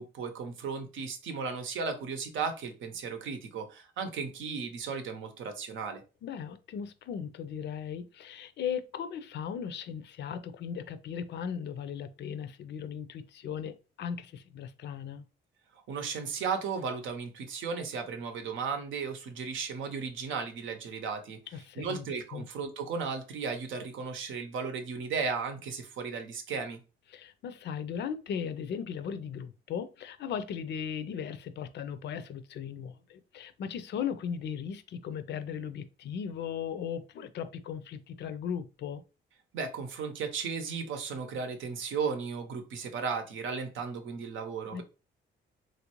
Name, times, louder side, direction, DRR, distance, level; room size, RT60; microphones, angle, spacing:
voice 1, 0.0-6.0 15.9-21.4 21.8-26.8 39.5-44.8, right 5 dB, 75° right, 0.7 m, -35 dB
voice 2, 6.2-15.2 21.5-22.0 22.3-22.5 27.1-39.0 44.7-44.8, left 7 dB, 60° left, 0.4 m, -37 dB
3.1 x 2.5 x 3.0 m
cardioid pair, 90°, 20 cm